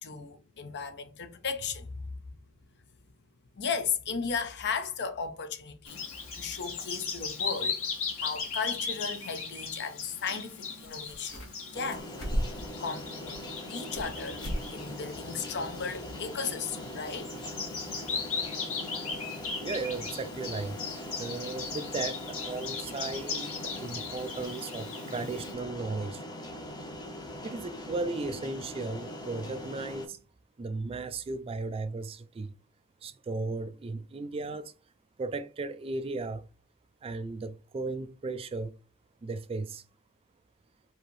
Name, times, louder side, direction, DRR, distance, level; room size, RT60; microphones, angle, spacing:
voice 1, 0.0-2.0 3.6-6.0 6.3-7.8 8.2-12.1 12.8-13.4 13.7-17.4, left 5 dB, 50° left, 0.6 m, -35 dB
Bird vocalization bird call bird song, 5.8-25.5, left 5 dB, 65° left, 1.7 m, -38 dB
sound 1, 10.5-10.6 10.8-11.6 11.9-12.7 13.2-14.1 14.4-14.6 15.0-15.1 15.6-15.7, equal, 80° left, 1.9 m, -34 dB
sound 2, 11.7-30.1, left 1 dB, 20° left, 0.7 m, -42 dB
voice 2, 19.6-26.3 27.4-30.2 30.6-32.5 33.0-34.7 35.2-36.5 37.0-38.8 39.2-39.8, right 3 dB, 25° right, 0.3 m, -36 dB
4.6 x 2.8 x 3.0 m
head